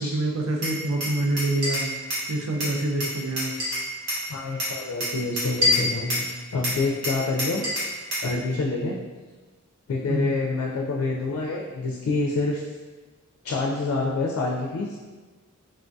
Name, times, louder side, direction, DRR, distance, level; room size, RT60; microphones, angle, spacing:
voice 1, 0.0-1.9 2.3-3.6 10.1-10.3, right 2 dB, 75° right, 0 dB, 0.4 m, -26 dB
Glass, 0.6-2.3 2.6-4.2 4.6-6.3 6.6-8.3, left 1 dB, 55° right, 1.1 m, -27 dB
voice 2, 4.3-7.6 8.2-9.0 9.9-12.6 13.4-15.0, left 3 dB, 85° left, -2 dB, 0.4 m, -27 dB
3.3 x 2.2 x 2.6 m, 1.3 s
head